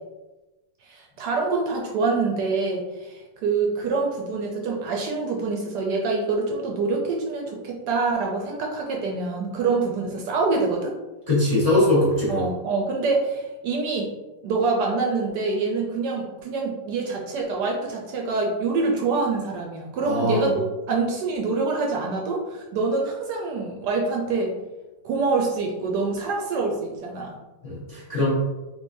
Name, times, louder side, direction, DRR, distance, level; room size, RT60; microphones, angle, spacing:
voice 1, 0.8-10.9 12.3-14.1 14.4-24.5 25.0-27.4, right 3 dB, 70° right, 0 dB, 1.1 m, -25 dB
voice 2, 11.3-12.5 20.0-20.5 27.6-28.3, left 1 dB, 25° left, -8 dB, 0.8 m, -21 dB
3.7 x 3.1 x 2.6 m, 1.1 s
omnidirectional pair, 2.0 m